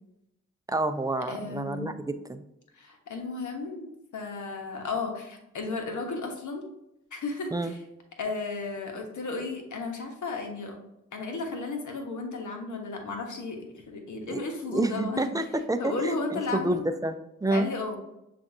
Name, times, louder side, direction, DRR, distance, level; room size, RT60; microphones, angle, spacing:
voice 1, 0.7-1.9 2.3-2.4 7.5-7.7 14.3-14.4 14.7-17.7, right 2 dB, 10° right, 9 dB, 0.4 m, -28 dB
voice 2, 1.3-1.9 2.7-6.6 7.1-7.8 8.2-10.8 11.1-15.3 15.8-16.8 17.5-18.0, left 3 dB, 70° left, 3 dB, 1.1 m, -34 dB
7.0 x 2.6 x 2.7 m, 0.86 s
supercardioid pair, 40°, 31 cm